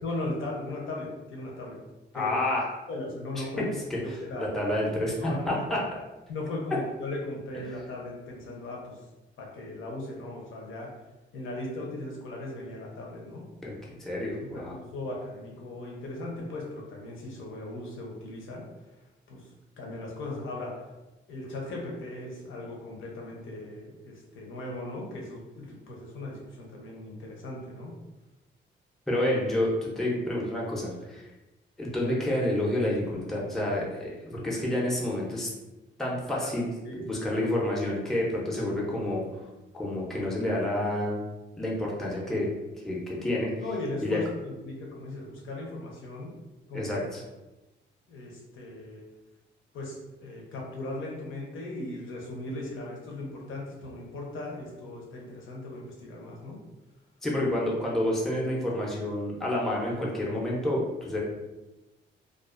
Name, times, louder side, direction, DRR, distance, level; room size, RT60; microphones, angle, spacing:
voice 1, 0.0-1.8 2.1-2.3 2.9-3.7 4.0-4.5 5.2-5.6 6.3-9.0 9.4-10.9 11.3-13.5 14.2-18.7 19.3-19.5 19.8-20.8 21.3-27.9 36.4-36.5 36.8-37.0 43.6-46.4 46.7-46.9 48.1-49.1 49.7-56.6, left 2 dB, 90° left, -1 dB, 0.7 m, -38 dB
voice 2, 2.1-2.7 3.4-3.5 3.9-4.0 4.4-5.8 13.6-13.7 14.0-14.7 29.1-31.3 31.8-35.5 36.0-39.2 39.7-41.2 41.6-42.5 42.8-43.5 44.0-44.2 46.7-47.2 57.2-61.2, left 1 dB, ahead, -4 dB, 0.5 m, -29 dB
2.4 x 2.3 x 2.4 m, 1.1 s
cardioid pair, 130°, 20 cm